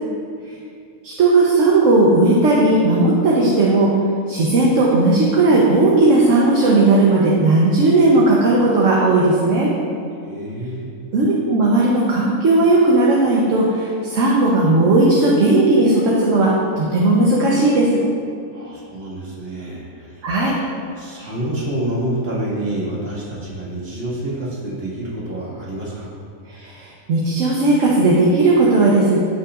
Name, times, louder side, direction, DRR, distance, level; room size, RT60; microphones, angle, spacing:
voice 1, 1.0-3.9 4.3-9.7 11.1-18.0 20.2-20.5 26.5-29.2, right 2 dB, 60° right, -4 dB, 1.2 m, -16 dB
voice 2, 10.2-10.9 18.5-20.2 21.0-26.1, right 1 dB, 45° right, -7 dB, 2.2 m, -27 dB
14.5 x 5.7 x 2.5 m, 2.3 s
omnidirectional pair, 1.5 m